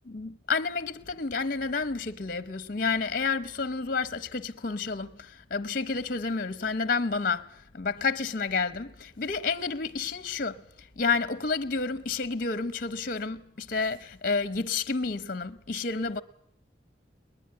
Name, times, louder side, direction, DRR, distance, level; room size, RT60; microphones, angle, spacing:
voice 1, 0.0-16.2, left 4 dB, 50° left, 0.9 m, -30 dB
21.0 x 20.0 x 9.6 m
head